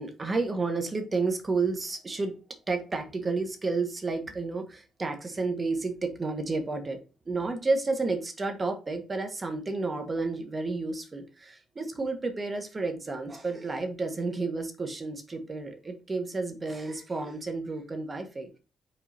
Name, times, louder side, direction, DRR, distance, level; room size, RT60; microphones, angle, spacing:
voice 1, 0.0-2.3 2.7-18.6, right 3 dB, 25° right, 5 dB, 1.5 m, -31 dB
5.3 x 4.4 x 4.3 m, 0.33 s
cardioid pair, 100°, 0 cm